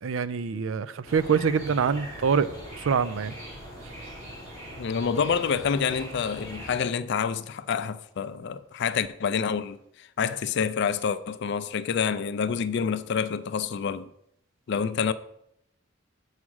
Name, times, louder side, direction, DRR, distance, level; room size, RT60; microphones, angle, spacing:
voice 1, 0.0-2.5 2.8-3.3, right 6 dB, 75° right, 0.5 m, -25 dB
sound 1, 1.1-6.8, equal, 45° right, 3.6 m, -41 dB
voice 2, 4.8-14.1 14.7-15.1, left 6 dB, 60° left, 0.4 m, -27 dB
7.1 x 4.9 x 6.3 m
head